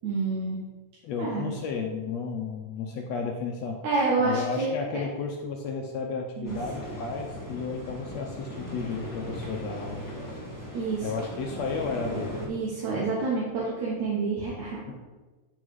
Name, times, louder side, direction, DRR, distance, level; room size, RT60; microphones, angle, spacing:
voice 1, 0.0-0.6 1.2-1.5 3.8-4.7 6.4-6.5 10.7-11.1 12.5-15.0, right 3 dB, 75° right, -6 dB, 2.6 m, -28 dB
voice 2, 1.0-3.8 4.2-10.0 11.0-12.3 14.9-15.0, left 5 dB, 75° left, 2 dB, 1.7 m, -33 dB
sound 1, 6.4-12.5, left 1 dB, 15° left, 0.7 m, -38 dB
10.5 x 3.9 x 4.7 m, 1.2 s
omnidirectional pair, 3.4 m